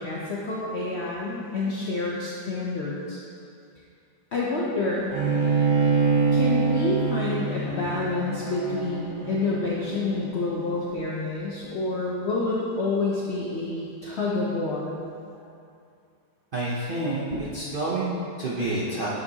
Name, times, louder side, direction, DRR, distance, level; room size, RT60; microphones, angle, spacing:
voice 1, 0.0-3.2 4.3-5.1 6.3-15.0, left 3 dB, 65° left, -4 dB, 0.6 m, -28 dB
Bowed string instrument, 5.1-10.4, right 4 dB, 80° right, 1.6 m, -25 dB
voice 2, 16.5-19.1, right 2 dB, 50° right, -7 dB, 0.6 m, -28 dB
6.8 x 6.7 x 2.8 m, 2.4 s
omnidirectional pair, 1.8 m